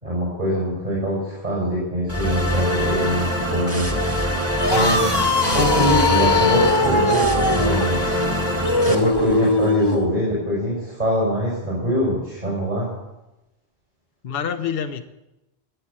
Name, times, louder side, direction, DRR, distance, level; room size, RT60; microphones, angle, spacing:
voice 1, 0.0-3.9 4.7-8.2 8.8-12.9, equal, 50° right, -5 dB, 6.3 m, -23 dB
sound 1, 2.1-8.9, equal, 15° right, 1.8 m, -23 dB
sound 2, 4.5-10.1, left 2 dB, 25° left, 1.3 m, -21 dB
voice 2, 7.0-7.6 14.2-15.0, left 7 dB, 65° left, 7 dB, 1.0 m, -29 dB
20.5 x 8.0 x 8.7 m, 0.99 s
omnidirectional pair, 1.1 m